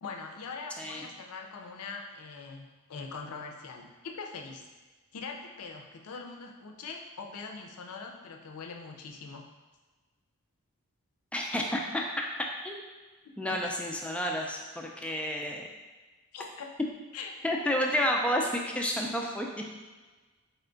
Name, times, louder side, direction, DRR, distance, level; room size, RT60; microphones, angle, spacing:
voice 1, 0.0-4.7 5.1-9.5 13.5-13.7 16.3-16.7 17.1-17.4, left 4 dB, 75° left, 3 dB, 0.5 m, -42 dB
voice 2, 11.3-12.3 12.6-12.8 13.4-15.7 17.4-19.5, equal, 5° left, 0 dB, 0.3 m, -30 dB
4.2 x 2.3 x 3.8 m, 1.3 s
head